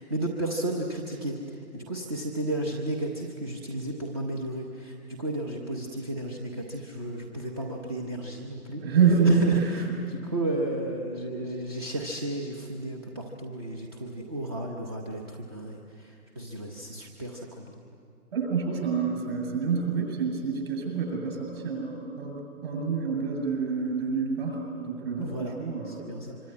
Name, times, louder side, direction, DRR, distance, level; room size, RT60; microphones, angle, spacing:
voice 1, 0.0-8.8 9.2-17.8 25.2-25.5 25.8-26.4, right 1 dB, 15° right, 0 dB, 0.8 m, -33 dB
voice 2, 8.8-10.0 18.3-26.0, right 5 dB, 40° right, 2 dB, 7.7 m, -27 dB
25.0 x 24.5 x 9.6 m, 2.6 s
hypercardioid pair, 170°, 46 cm